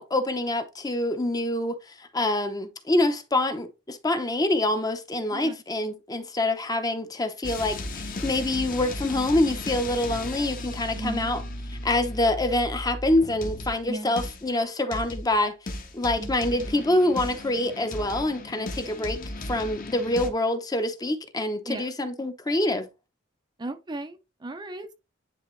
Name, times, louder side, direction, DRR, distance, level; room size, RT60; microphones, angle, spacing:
voice 1, 0.0-11.4 11.7-15.6 15.9-22.9, left 1 dB, 20° left, 0.8 m, -26 dB
sound 1, 7.4-13.9 14.2-14.5 14.9-15.4 15.7-20.3, left 1 dB, 45° left, 1.1 m, -35 dB
voice 2, 10.9-11.3 13.9-14.2 16.2-16.3 21.7-21.8 23.6-24.9, right 1 dB, 20° right, 0.5 m, -35 dB
9.9 x 3.4 x 3.2 m
head